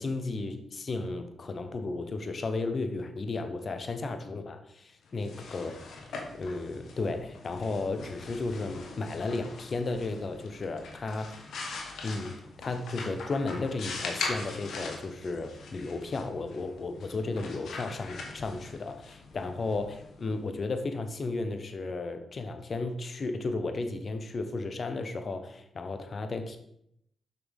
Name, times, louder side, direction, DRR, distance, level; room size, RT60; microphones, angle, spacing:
voice 1, 0.0-5.7 6.3-11.4 12.0-26.6, left 3 dB, 55° left, 8 dB, 0.9 m, -34 dB
sound 1, 5.1-20.7, left 3 dB, 75° left, 1.1 m, -42 dB
6.1 x 5.9 x 3.6 m, 0.74 s
supercardioid pair, 50°, 0 cm